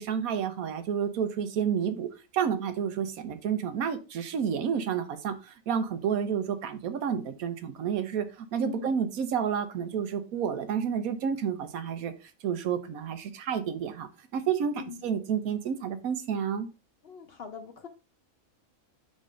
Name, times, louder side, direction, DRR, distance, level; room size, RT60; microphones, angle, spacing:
voice 1, 0.0-16.7, right 7 dB, 80° right, 10 dB, 1.2 m, -30 dB
voice 2, 8.6-8.9 14.8-15.1 17.0-17.9, left 6 dB, 55° left, 7 dB, 0.7 m, -42 dB
5.3 x 3.8 x 4.9 m, 0.31 s
omnidirectional pair, 1.5 m